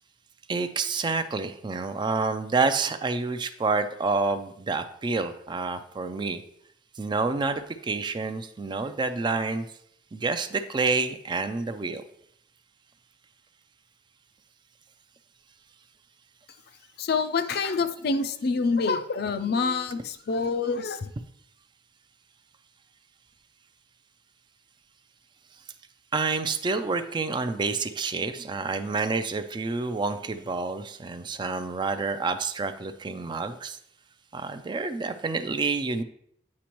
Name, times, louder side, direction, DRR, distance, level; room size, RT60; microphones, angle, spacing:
voice 1, 0.5-6.4 7.0-9.7 10.1-12.0 26.1-33.8 34.3-36.0, right 4 dB, 25° right, 10 dB, 0.3 m, -28 dB
voice 2, 17.0-21.1, left 4 dB, 60° left, 10 dB, 0.5 m, -26 dB
8.4 x 5.1 x 3.0 m, 0.72 s
head